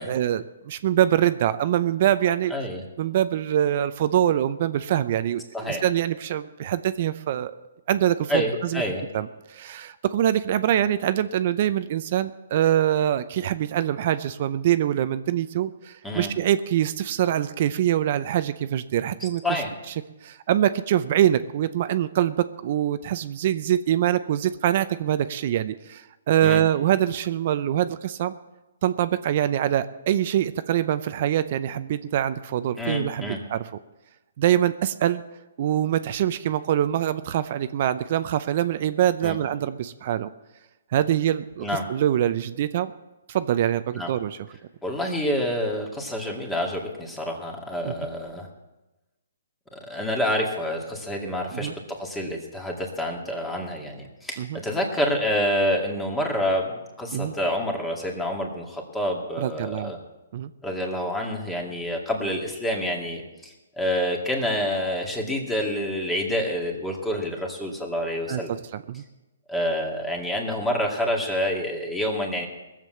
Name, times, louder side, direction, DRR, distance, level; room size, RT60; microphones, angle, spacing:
voice 1, 0.1-2.5 3.0-7.6 7.9-8.8 9.1-19.6 20.2-28.3 28.8-33.7 34.4-35.2 35.6-40.3 40.9-42.9 43.3-44.4 47.8-47.9 51.5-51.7 54.4-54.6 57.1-57.3 59.4-59.9 60.3-60.5 68.3-68.4 68.7-69.0, right 11 dB, 50° right, 13 dB, 0.6 m, -24 dB
voice 2, 2.5-2.8 5.5-5.8 8.3-9.0 16.0-16.3 19.2-19.7 26.4-26.6 32.8-33.4 39.2-39.4 41.6-41.9 44.0-44.1 44.8-48.5 49.7-56.7 57.0-60.0 60.6-68.6 69.5-72.5, equal, 5° left, 1 dB, 2.2 m, -28 dB
18.5 x 7.5 x 7.6 m, 1.0 s
hypercardioid pair, 145°, 0 cm